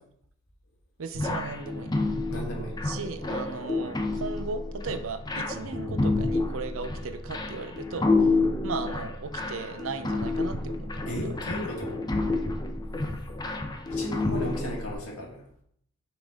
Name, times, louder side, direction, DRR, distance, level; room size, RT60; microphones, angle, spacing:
voice 1, 1.0-1.9 2.8-8.3 8.6-11.3, right 4 dB, 65° right, 9 dB, 0.6 m, -36 dB
sound 1, 1.1-14.9, left 2 dB, 20° left, 0.6 m, -29 dB
voice 2, 2.3-2.8 11.1-12.0 13.9-15.4, left 1 dB, 80° left, -2 dB, 1.9 m, -34 dB
6.0 x 5.1 x 3.5 m, 0.68 s
head